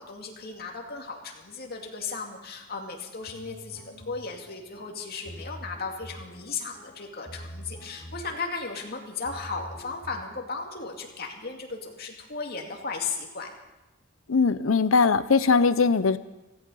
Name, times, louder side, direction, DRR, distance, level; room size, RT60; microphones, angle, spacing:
voice 1, 0.0-13.5, left 4 dB, 50° left, 1 dB, 2.4 m, -36 dB
sound 1, 3.2-11.2, equal, 15° left, 3.4 m, -46 dB
voice 2, 14.3-16.2, left 4 dB, 90° left, 14 dB, 0.7 m, -20 dB
16.0 x 15.0 x 5.6 m, 1.0 s
head